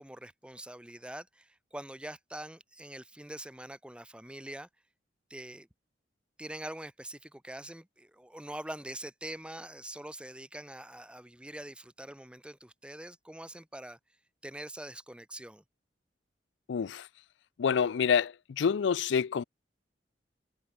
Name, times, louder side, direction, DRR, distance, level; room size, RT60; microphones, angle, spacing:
voice 1, 0.0-4.7 5.3-5.7 6.4-14.0 14.4-15.6, right 1 dB, 5° right, 1.1 m, -44 dB
voice 2, 16.7-17.1 17.6-19.4, left 6 dB, 75° left, 0.4 m, -27 dB
head